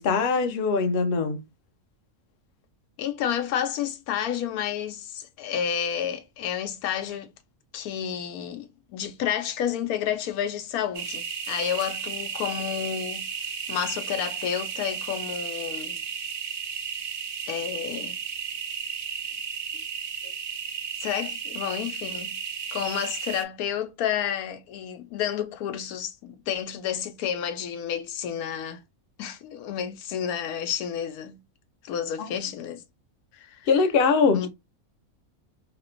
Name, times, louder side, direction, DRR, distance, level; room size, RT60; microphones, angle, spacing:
voice 1, 0.0-1.4 32.2-32.3 33.7-34.5, left 5 dB, 60° left, 0.6 m, -22 dB
voice 2, 3.0-7.3 7.7-13.3 13.7-16.0 17.5-18.2 20.2-20.3 21.0-22.4 22.7-28.8 29.2-31.4 31.8-32.8 33.3-33.7 34.3-34.5, left 9 dB, 90° left, 1.1 m, -30 dB
sound 1, 10.9-23.4, right 6 dB, 70° right, 0.4 m, -34 dB
2.9 x 2.1 x 3.7 m
omnidirectional pair, 1.5 m